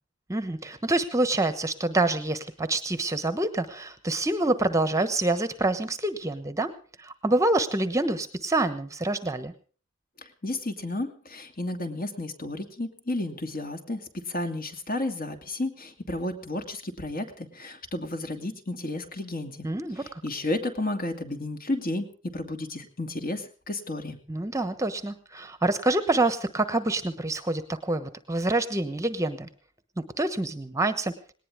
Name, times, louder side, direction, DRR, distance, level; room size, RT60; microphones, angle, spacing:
voice 1, 0.3-6.7 7.0-9.5 19.6-20.2 24.3-29.5 30.0-31.1, right 2 dB, 15° right, 11 dB, 1.1 m, -26 dB
voice 2, 10.2-19.7 20.0-22.1 22.3-24.2, left 2 dB, 45° left, 6 dB, 2.5 m, -32 dB
19.5 x 18.5 x 3.6 m, 0.40 s
head